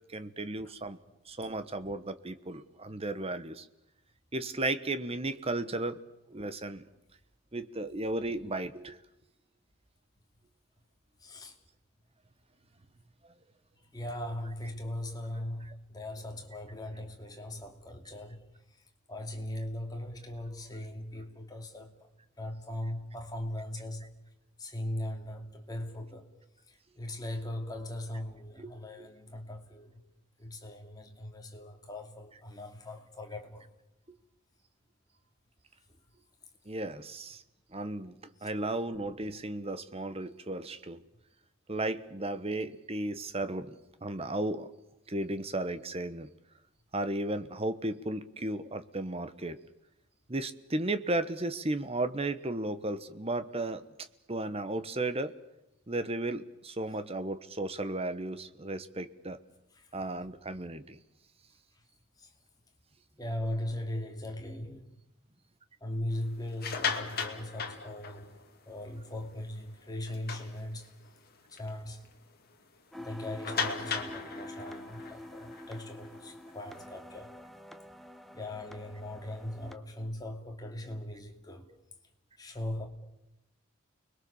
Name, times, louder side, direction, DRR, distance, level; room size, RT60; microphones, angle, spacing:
voice 1, 0.1-1.0 1.2-3.7 4.3-6.0 6.3-6.9 7.5-9.0 28.6-28.7 29.0-29.1 36.6-37.4 37.7-38.1 38.4-41.0 41.7-43.7 44.0-44.7 45.1-46.3 46.9-49.6 50.3-53.9 54.3-55.3 55.9-59.4 59.9-61.0, right 2 dB, 30° right, 1.2 m, -34 dB
voice 2, 11.2-11.6 13.8-22.1 22.4-24.1 24.6-26.3 26.6-30.0 30.4-33.7 35.9-36.0 38.4-38.5 59.7-60.0 61.7-61.8 62.2-62.4 63.2-64.8 65.8-68.4 68.6-70.9 71.5-72.1 73.0-77.4 78.3-81.7 82.4-82.9, left 1 dB, 20° left, 2.8 m, -39 dB
sound 1, 66.4-68.6 69.0-69.2 69.6-69.7 70.1-71.1 71.6-71.7 72.0-72.1 73.4-76.8, left 6 dB, 45° left, 2.4 m, -37 dB
sound 2, 72.9-79.7, left 1 dB, ahead, 1.0 m, -46 dB
30.0 x 21.5 x 7.2 m
head